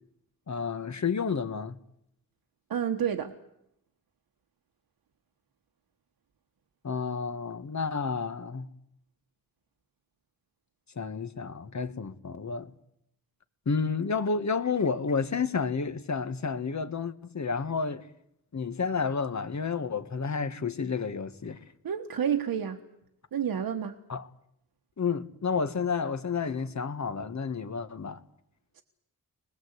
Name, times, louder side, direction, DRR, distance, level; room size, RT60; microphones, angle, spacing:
voice 1, 0.5-1.8 6.8-8.7 10.9-12.7 13.6-18.0 18.5-21.6 24.1-24.3 25.0-28.2, left 5 dB, 55° left, 1.7 m, -30 dB
voice 2, 2.7-3.3 21.8-22.8 23.3-24.0 28.8-28.9, right 8 dB, 85° right, 1.4 m, -29 dB
24.5 x 20.5 x 8.2 m
cardioid pair, 65°, 35 cm